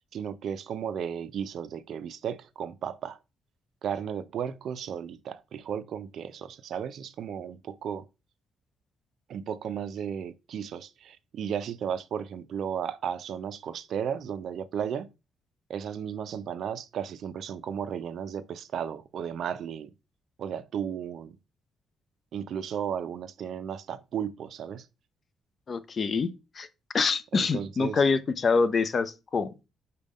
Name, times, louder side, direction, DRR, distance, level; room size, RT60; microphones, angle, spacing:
voice 1, 0.1-3.2 3.8-8.1 9.3-15.1 15.7-19.9 20.4-21.4 22.3-24.9 27.3-28.0, right 8 dB, 70° right, 0.3 m, -34 dB
voice 2, 25.7-26.3 26.6-26.7 26.9-29.7, left 4 dB, 45° left, 0.5 m, -26 dB
6.2 x 2.2 x 3.5 m
cardioid pair, 75°, 0 cm